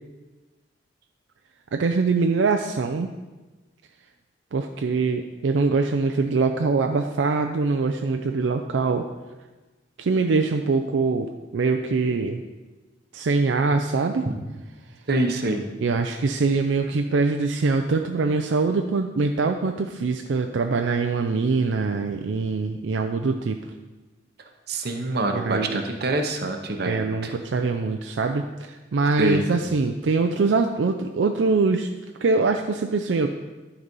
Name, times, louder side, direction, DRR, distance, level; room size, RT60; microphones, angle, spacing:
voice 1, 1.7-3.1 4.5-9.1 10.0-12.4 13.1-14.3 15.8-23.6 25.3-25.8 26.8-31.9 32.2-33.3, right 4 dB, 85° right, 5 dB, 0.4 m, -23 dB
voice 2, 15.1-15.7 24.7-27.3 29.2-29.5, right 2 dB, 60° right, 5 dB, 0.9 m, -25 dB
11.0 x 4.1 x 5.3 m, 1.2 s
head